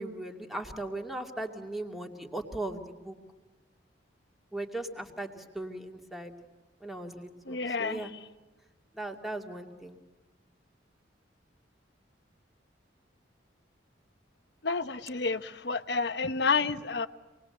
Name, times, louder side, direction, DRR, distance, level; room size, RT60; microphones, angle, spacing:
voice 1, 0.0-3.2 4.5-6.3 6.8-8.1 8.9-10.0, right 1 dB, ahead, 2 dB, 2.4 m, -38 dB
voice 2, 7.5-8.2 14.6-17.1, left 4 dB, 65° left, 10 dB, 1.0 m, -30 dB
27.0 x 20.5 x 7.9 m, 1.2 s
head